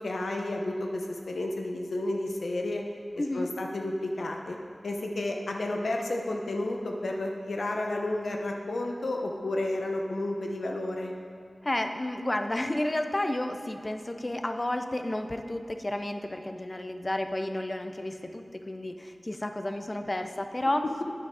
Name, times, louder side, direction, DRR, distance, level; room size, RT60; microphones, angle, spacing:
voice 1, 0.0-2.8 3.3-4.6 4.8-11.1, left 1 dB, 85° left, 2 dB, 0.9 m, -31 dB
voice 2, 3.2-3.5 11.6-20.8, left 1 dB, 30° left, 7 dB, 0.6 m, -31 dB
9.5 x 6.1 x 4.8 m, 2.4 s
wide cardioid pair, 90°, 0 cm